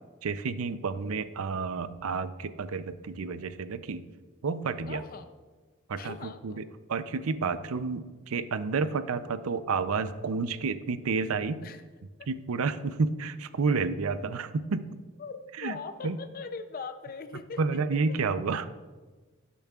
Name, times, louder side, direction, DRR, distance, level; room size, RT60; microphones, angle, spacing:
voice 1, 0.2-4.1 4.4-5.0 5.9-11.6 12.3-15.0 15.6-15.8 16.0-16.2 17.6-18.7, right 4 dB, 90° right, 12 dB, 0.5 m, -30 dB
voice 2, 4.9-5.3 6.0-6.6 11.6-11.8 15.2-18.2, left 4 dB, 45° left, 9 dB, 0.5 m, -41 dB
17.5 x 7.0 x 2.4 m, 1.3 s
head